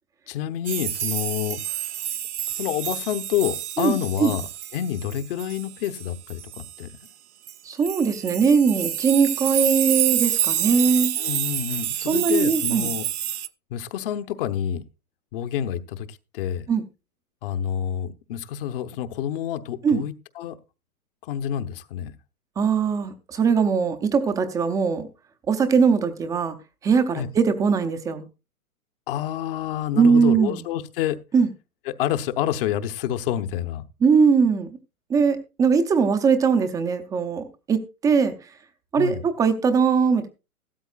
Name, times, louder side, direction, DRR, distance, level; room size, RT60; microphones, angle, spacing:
voice 1, 0.3-1.9 2.6-4.5 4.7-6.9 11.2-13.1 13.7-14.8 15.3-16.7 17.4-20.6 21.2-22.1 27.1-27.3 29.1-31.2 31.9-33.8 39.0-39.2, left 10 dB, 40° left, 0.9 m, -28 dB
sound 1, 0.7-6.8 7.5-7.6 7.8-13.5, right 11 dB, 85° right, 0.7 m, -28 dB
voice 2, 7.6-11.1 12.1-12.9 16.7-16.8 19.8-20.0 22.6-25.1 25.5-26.6 26.8-28.2 29.9-30.6 31.3-31.5 34.0-34.7 35.1-38.3 38.9-40.3, right 5 dB, 10° right, 0.5 m, -20 dB
15.0 x 12.5 x 2.4 m
hypercardioid pair, 125°, 43 cm